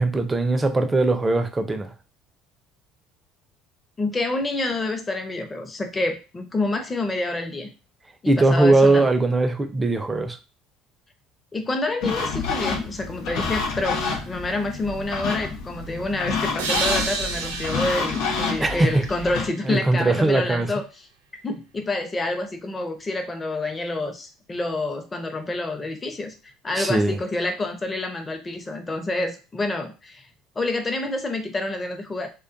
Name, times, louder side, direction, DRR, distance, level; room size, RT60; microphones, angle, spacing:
voice 1, 0.0-1.9 8.3-10.4 18.6-18.9 19.6-20.7 26.7-27.2, right 2 dB, 20° right, 7 dB, 0.5 m, -20 dB
voice 2, 4.0-7.7 8.2-9.1 11.5-20.8 21.4-26.3 26.6-30.3 30.6-32.3, left 2 dB, 25° left, 6 dB, 0.7 m, -28 dB
sound 1, 12.0-19.5, left 4 dB, 70° left, 0.6 m, -28 dB
sound 2, 16.6-20.1, right 4 dB, 85° right, 0.4 m, -31 dB
2.4 x 2.3 x 2.5 m, 0.32 s
hypercardioid pair, 70°, 0 cm